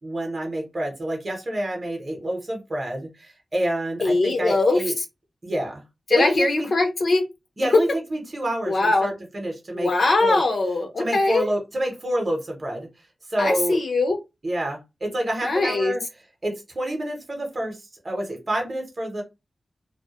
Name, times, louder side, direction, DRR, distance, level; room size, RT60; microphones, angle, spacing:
voice 1, 0.0-4.9 5.4-5.8 6.1-6.7 7.6-9.9 10.2-10.4 11.0-12.9 13.3-13.8 14.4-16.0 16.4-19.2, right 1 dB, 30° right, 1 dB, 0.7 m, -28 dB
voice 2, 4.0-4.8 6.1-7.2 7.7-7.8 8.7-9.1 9.7-11.5 13.4-14.2 15.4-15.9, left 2 dB, 60° left, 4 dB, 0.5 m, -21 dB
2.1 x 2.0 x 2.8 m, 0.24 s
wide cardioid pair, 150°, 0 cm